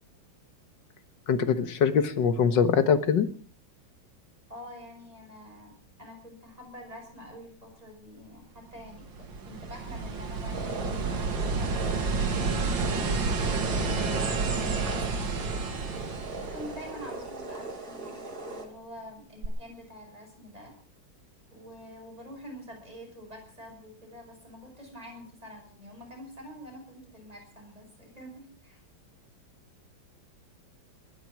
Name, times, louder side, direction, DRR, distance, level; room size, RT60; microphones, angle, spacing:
voice 1, 1.3-3.3, left 6 dB, 70° left, 11 dB, 2.0 m, -23 dB
voice 2, 4.5-14.2 14.8-15.9 16.4-20.7 21.5-28.8, equal, 20° right, 1 dB, 6.7 m, -47 dB
sound 1, 8.8-17.3 19.4-19.5, right 4 dB, 75° right, 2.7 m, -30 dB
sound 2, 10.5-18.7, right 2 dB, 50° right, 3.5 m, -39 dB
21.0 x 11.0 x 6.1 m, 0.43 s
omnidirectional pair, 2.1 m